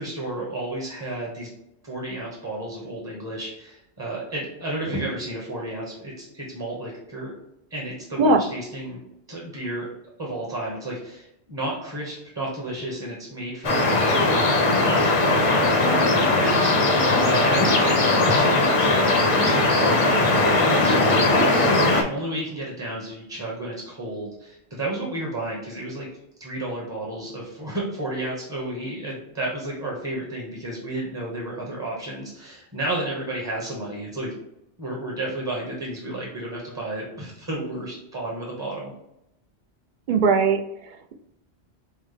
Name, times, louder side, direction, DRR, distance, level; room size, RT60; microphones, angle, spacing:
voice 1, 0.0-1.5 1.8-7.3 7.7-9.0 9.3-9.9 10.2-14.4 14.7-26.1 26.4-34.4 34.8-38.9, right 1 dB, 25° right, -3 dB, 0.9 m, -32 dB
sound 1, 13.6-22.0, left 2 dB, 40° left, 0.5 m, -19 dB
voice 2, 40.1-41.1, right 3 dB, 60° right, 5 dB, 0.6 m, -20 dB
5.6 x 2.1 x 3.2 m, 0.81 s
omnidirectional pair, 1.1 m